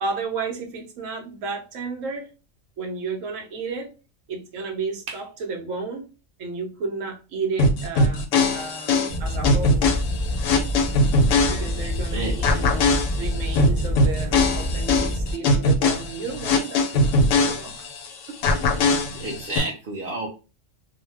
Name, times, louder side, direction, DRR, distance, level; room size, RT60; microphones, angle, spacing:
voice 1, 0.0-2.2 2.8-3.9 4.3-6.1 6.4-8.3 8.5-9.9 11.5-17.9 18.3-18.4, right 4 dB, 80° right, 4 dB, 1.1 m, -32 dB
sound 1, 7.6-12.1 12.4-18.1 18.4-19.6, left 2 dB, 85° left, 1.0 m, -21 dB
sound 2, 9.1-15.3, left 1 dB, 40° left, 0.5 m, -27 dB
voice 2, 19.1-20.3, right 2 dB, 55° right, -2 dB, 0.7 m, -30 dB
2.7 x 2.1 x 3.2 m, 0.32 s
omnidirectional pair, 1.3 m